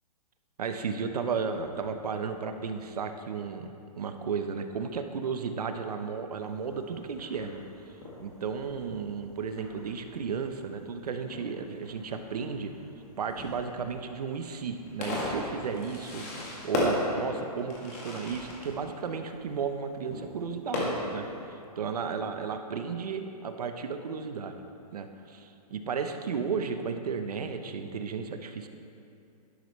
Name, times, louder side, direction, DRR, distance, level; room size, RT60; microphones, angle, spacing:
voice 1, 0.6-3.7 4.0-7.6 8.2-12.7 13.2-21.3 21.8-24.6 24.9-28.7, right 5 dB, 75° right, 7 dB, 1.0 m, -34 dB
Fireworks, 6.4-21.4, left 2 dB, 25° left, 1.6 m, -37 dB
11.5 x 11.5 x 3.2 m, 2.7 s
hypercardioid pair, 180°, 20 cm